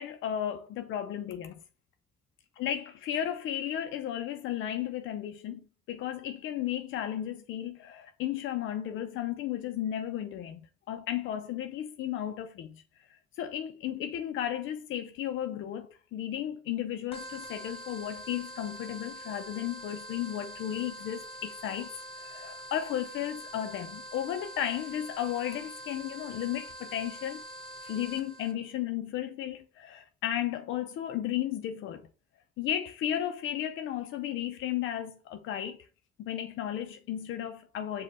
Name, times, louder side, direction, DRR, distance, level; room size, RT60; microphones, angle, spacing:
voice 1, 0.0-1.6 2.6-10.6 10.9-12.8 13.1-27.4 27.8-32.1 32.6-35.8 36.2-38.0, left 11 dB, 85° left, 0.5 m, -34 dB
sound 1, 17.1-28.5, right 1 dB, 30° left, 1.1 m, -44 dB
5.2 x 2.3 x 4.0 m
cardioid pair, 90°, 20 cm